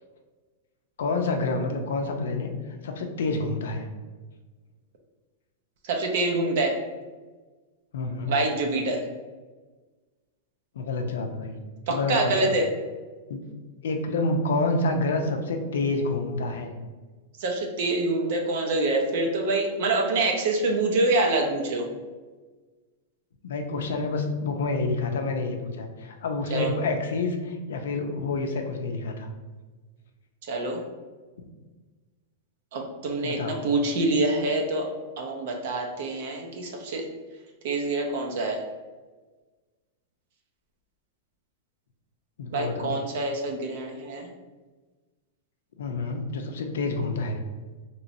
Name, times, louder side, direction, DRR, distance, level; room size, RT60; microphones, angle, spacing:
voice 1, 1.0-3.9 7.9-8.3 10.7-11.5 11.9-12.5 13.3-13.4 13.8-16.7 23.4-29.3 33.2-33.7 42.4-43.0 45.8-47.4, left 3 dB, 85° left, 4 dB, 0.5 m, -28 dB
voice 2, 5.8-6.8 8.3-9.0 11.9-12.7 17.4-21.9 26.5-26.7 30.5-30.8 32.7-34.9 35.2-37.0 37.6-38.6 42.5-44.3, right 2 dB, 65° right, 2 dB, 0.6 m, -26 dB
3.0 x 3.0 x 2.6 m, 1.3 s
hypercardioid pair, 135°, 0 cm